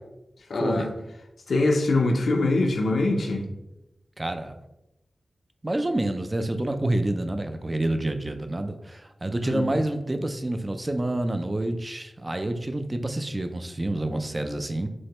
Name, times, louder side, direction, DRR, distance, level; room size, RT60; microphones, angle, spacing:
voice 1, 0.5-0.9 1.5-3.5 9.4-9.7, left 2 dB, 90° left, 3 dB, 0.6 m, -23 dB
voice 2, 4.2-4.6 5.6-14.9, right 1 dB, 25° right, 7 dB, 0.3 m, -28 dB
6.1 x 2.1 x 2.9 m, 0.91 s
wide cardioid pair, 120°, 0 cm